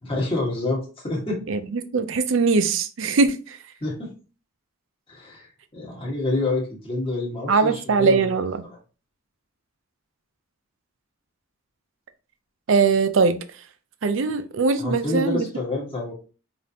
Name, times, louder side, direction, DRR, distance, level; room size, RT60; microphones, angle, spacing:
voice 1, 0.0-1.4 3.8-4.1 5.1-8.4 8.6-8.8 14.8-16.1, left 2 dB, 25° left, 1.4 m, -28 dB
voice 2, 1.5-3.6 7.5-8.7 12.7-13.4 14.0-15.4, right 4 dB, 65° right, 0.5 m, -21 dB
5.1 x 2.6 x 2.7 m
head